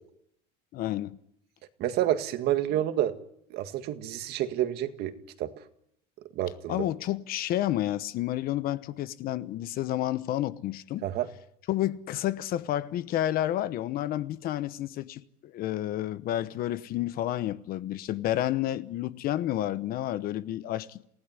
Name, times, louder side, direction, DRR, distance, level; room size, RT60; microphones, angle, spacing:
voice 1, 0.7-1.2 6.7-11.1 11.7-21.0, left 13 dB, 45° left, 1.0 m, -30 dB
voice 2, 1.8-3.1 3.5-5.5 6.4-6.9 11.0-11.3, right 12 dB, 50° right, 1.9 m, -29 dB
27.5 x 16.5 x 9.7 m
cardioid pair, 150°, 20 cm